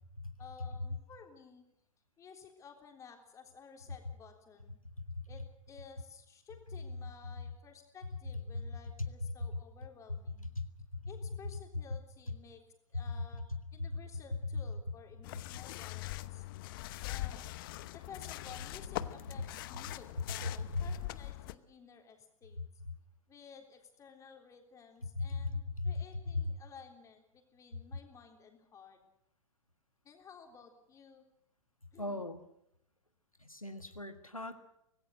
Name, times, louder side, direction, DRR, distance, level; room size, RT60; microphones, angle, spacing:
voice 1, 0.4-1.6 2.2-4.8 5.3-10.5 11.0-12.6 12.9-13.4 13.7-16.4 17.0-17.5 17.9-22.6 23.3-29.0 30.0-31.2 31.9-32.2, left 6 dB, 20° left, 3 dB, 3.6 m, -54 dB
voice 2, 10.6-11.0 12.9-13.0 13.8-13.9 25.0-26.0 26.3-26.5 32.0-32.4 33.4-34.6, left 3 dB, 90° left, 7 dB, 1.7 m, -37 dB
sound 1, 15.2-21.6, left 16 dB, 40° left, 0.9 m, -42 dB
25.0 x 19.0 x 6.5 m, 0.79 s
figure-of-eight pair, 105°, 17 cm